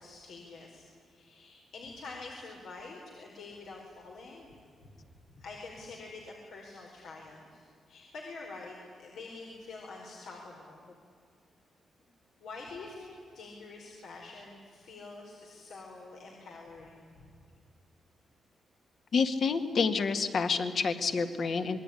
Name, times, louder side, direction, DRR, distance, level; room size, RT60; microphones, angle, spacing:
voice 1, 0.0-4.5 5.3-10.9 12.4-17.3, left 3 dB, 80° left, -1 dB, 4.5 m, -46 dB
voice 2, 19.1-21.8, left 5 dB, 55° left, 8 dB, 2.0 m, -28 dB
27.0 x 21.5 x 10.0 m, 2.4 s
cardioid pair, 110°, 0 cm